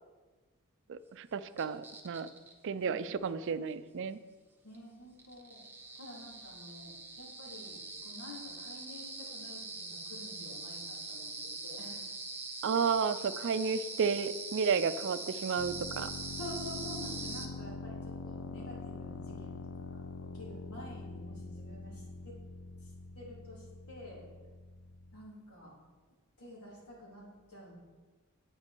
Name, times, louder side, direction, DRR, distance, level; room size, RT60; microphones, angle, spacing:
voice 1, 0.9-2.3 2.6-4.2 12.6-16.1, right 6 dB, 55° right, 13 dB, 0.4 m, -32 dB
sound 1, 1.6-2.5 4.7-4.8 5.2-17.5, right 3 dB, 10° right, 0.8 m, -43 dB
voice 2, 2.8-3.3 4.6-5.6 6.0-12.1 12.6-12.8 16.3-22.4 22.8-24.3 25.1-25.8 26.4-27.7, left 1 dB, 85° left, -5 dB, 3.6 m, -49 dB
sound 2, 15.6-25.2, left 3 dB, 60° left, 0.5 m, -44 dB
8.9 x 8.6 x 4.5 m, 1.3 s
head